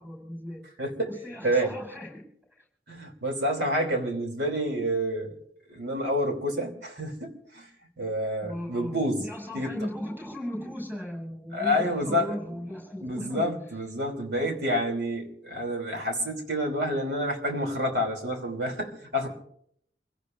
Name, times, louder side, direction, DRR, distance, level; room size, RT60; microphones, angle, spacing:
voice 1, 0.0-0.6 1.1-2.2 8.4-13.4, left 1 dB, 10° right, 0 dB, 6.9 m, -37 dB
voice 2, 0.8-1.1 1.4-1.7 2.9-5.3 5.7-7.7 8.0-9.2 9.5-9.8 11.5-12.3 13.0-19.3, equal, 65° right, 3 dB, 3.4 m, -28 dB
27.5 x 17.0 x 2.7 m, 0.68 s
head